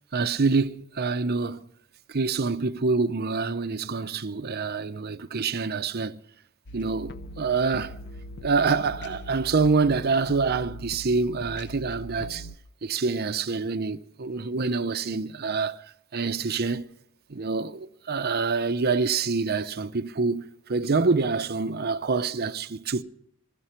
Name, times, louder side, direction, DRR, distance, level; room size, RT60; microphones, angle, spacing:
voice 1, 0.1-1.7 2.1-6.2 6.7-7.9 8.4-12.5 12.8-15.8 16.1-16.8 17.3-23.0, right 4 dB, 50° right, 0.7 m, -26 dB
sound 1, 6.7-12.5, equal, 55° left, 0.8 m, -41 dB
20.0 x 14.5 x 4.4 m
head